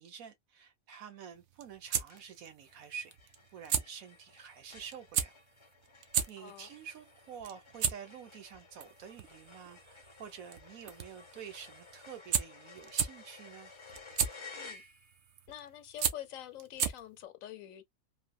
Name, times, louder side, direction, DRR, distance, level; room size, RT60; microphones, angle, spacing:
voice 1, 0.0-5.4 6.3-13.7, right 7 dB, 85° right, 1.3 m, -48 dB
sound 1, 0.9-1.4 1.7-1.8 2.1-15.4, left 4 dB, 30° left, 0.5 m, -54 dB
sound 2, 1.4-17.2, right 8 dB, 65° right, 0.8 m, -37 dB
voice 2, 6.4-6.7 14.6-14.8 15.5-17.8, left 11 dB, 75° left, 1.0 m, -46 dB
3.2 x 2.1 x 2.4 m
omnidirectional pair, 1.4 m